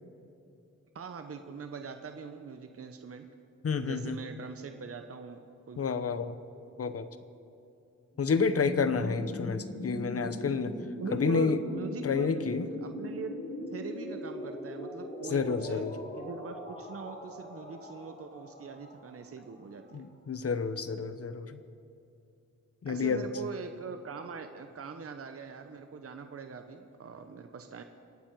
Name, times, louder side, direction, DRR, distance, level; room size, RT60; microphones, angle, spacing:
voice 1, 0.9-3.3 3.8-5.8 11.0-12.4 12.8-13.3 13.7-15.8 16.1-20.1 22.9-27.8, right 5 dB, 45° right, 7 dB, 0.9 m, -42 dB
voice 2, 3.6-4.2 5.8-6.4 6.8-7.1 8.2-10.7 11.1-11.6 12.0-12.6 15.3-15.9 19.9-21.6 22.8-23.2, left 5 dB, 50° left, 12 dB, 0.9 m, -29 dB
sound 1, 8.2-19.9, left 1 dB, 25° left, 2.7 m, -40 dB
26.0 x 8.7 x 4.7 m, 2.7 s
cardioid pair, 80°, 32 cm